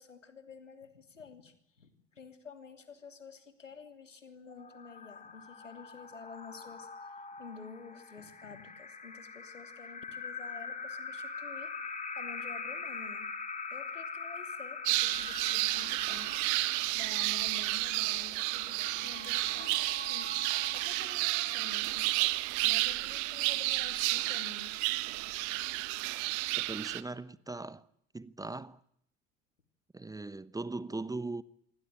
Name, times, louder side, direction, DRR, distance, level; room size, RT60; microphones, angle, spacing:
voice 1, 0.0-6.9 7.4-11.7 12.2-13.3 13.7-20.4 20.7-22.1 22.6-24.9, left 5 dB, 80° left, 3.1 m, -50 dB
sound 1, 4.5-21.9, left 4 dB, 20° left, 4.6 m, -43 dB
sound 2, 14.9-27.0, right 21 dB, 50° right, 1.5 m, -31 dB
voice 2, 26.6-27.8 28.1-28.8 29.9-31.4, right 3 dB, 10° right, 1.1 m, -39 dB
27.0 x 24.0 x 8.9 m
figure-of-eight pair, 65°, 37 cm